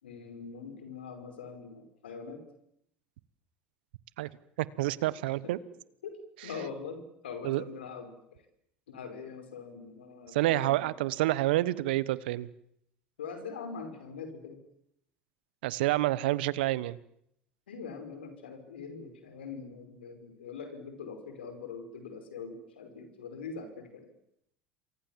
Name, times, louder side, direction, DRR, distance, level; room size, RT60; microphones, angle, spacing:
voice 1, 0.0-2.4 6.0-6.1 6.4-8.4 8.9-10.9 13.2-14.6 17.7-24.1, left 5 dB, 85° left, 7 dB, 5.4 m, -43 dB
voice 2, 4.6-5.6 7.4-7.6 10.3-12.5 15.6-17.0, right 17 dB, 75° right, 20 dB, 1.1 m, -28 dB
28.0 x 23.0 x 7.5 m, 0.75 s
hypercardioid pair, 75°, 5 cm